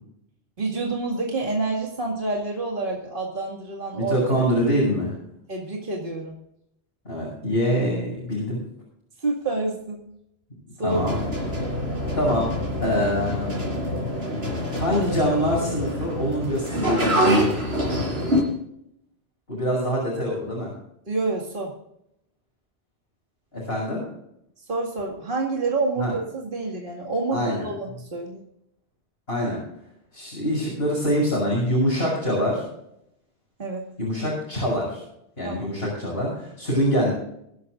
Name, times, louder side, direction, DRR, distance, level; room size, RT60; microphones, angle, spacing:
voice 1, 0.6-4.4 5.5-6.4 9.2-10.1 10.8-11.0 21.1-21.7 24.7-28.4 33.6-33.9 35.4-35.7, right 3 dB, 50° right, -1 dB, 2.4 m, -28 dB
voice 2, 4.0-5.1 7.1-8.6 10.8-11.2 12.1-12.5 12.8-13.6 14.8-17.2 19.5-20.7 23.5-24.0 26.0-26.1 27.3-27.7 29.3-29.6 30.1-32.6 34.0-35.0 35.4-37.1, equal, 60° left, -5 dB, 7.3 m, -24 dB
sound 1, 10.9-18.4, equal, 65° right, 5.3 m, -25 dB
24.5 x 11.5 x 2.6 m, 0.78 s
omnidirectional pair, 1.1 m